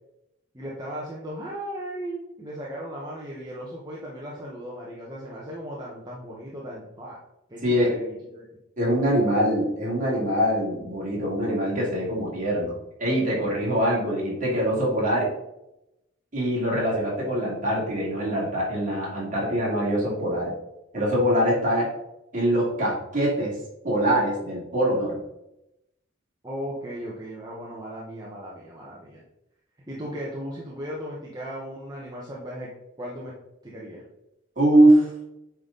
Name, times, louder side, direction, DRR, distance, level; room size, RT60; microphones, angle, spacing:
voice 1, 0.5-7.2 7.5-8.5 26.4-29.2 29.9-32.7 33.0-33.3 33.6-34.0, equal, 20° right, -5 dB, 1.0 m, -36 dB
voice 2, 8.8-12.7 13.0-15.3 16.3-20.5 20.9-21.9 22.3-23.5 23.8-25.2 34.6-35.1, right 1 dB, 40° right, -5 dB, 2.8 m, -23 dB
8.5 x 4.1 x 3.9 m, 0.88 s
head